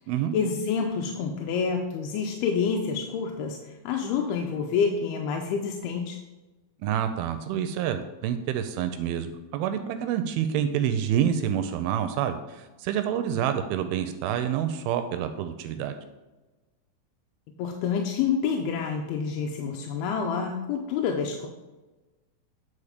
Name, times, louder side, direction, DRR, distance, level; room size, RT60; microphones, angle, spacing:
voice 1, 0.3-6.2 17.6-21.5, left 6 dB, 85° left, 2 dB, 2.6 m, -28 dB
voice 2, 6.8-16.0, right 9 dB, 80° right, 9 dB, 2.3 m, -28 dB
9.9 x 4.3 x 5.0 m, 1.1 s
omnidirectional pair, 4.5 m